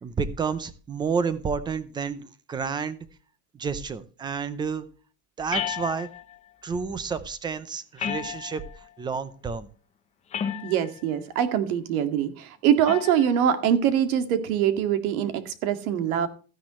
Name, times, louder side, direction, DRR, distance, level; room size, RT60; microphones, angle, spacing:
voice 1, 0.0-3.1 3.5-4.9 5.4-6.1 6.6-9.7, right 5 dB, 10° right, 14 dB, 0.5 m, -30 dB
sound 1, 5.5-6.4 8.0-8.8 10.3-11.0 12.9-13.3, left 8 dB, 15° left, 0.8 m, -32 dB
voice 2, 10.6-16.3, right 9 dB, 85° right, 9 dB, 2.2 m, -23 dB
14.0 x 10.5 x 3.1 m, 0.37 s
cardioid pair, 175°, 42 cm